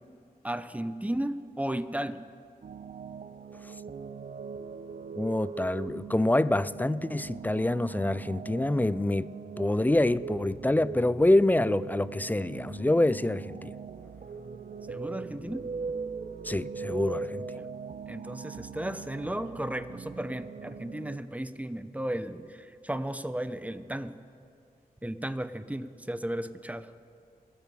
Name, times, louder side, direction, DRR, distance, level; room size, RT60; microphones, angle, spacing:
voice 1, 0.4-2.2 14.9-15.7 17.6-17.7 18.1-24.2 25.0-26.9, right 1 dB, 10° right, 0.7 m, -34 dB
sound 1, 2.6-21.2, right 5 dB, 60° right, 0.8 m, -40 dB
voice 2, 5.2-9.3 9.6-13.7 16.4-17.5, left 1 dB, 10° left, 0.4 m, -26 dB
27.5 x 9.3 x 4.9 m
cardioid pair, 60°, 16 cm